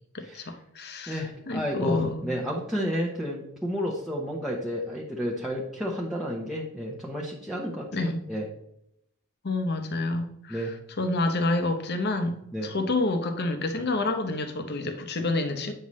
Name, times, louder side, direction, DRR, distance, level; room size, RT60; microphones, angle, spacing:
voice 1, 0.1-2.3 7.9-8.2 9.4-15.7, left 2 dB, 45° left, 7 dB, 0.9 m, -28 dB
voice 2, 1.1-8.4 10.5-10.7 12.5-12.7, equal, ahead, -4 dB, 0.9 m, -31 dB
8.6 x 5.5 x 3.1 m, 0.77 s
head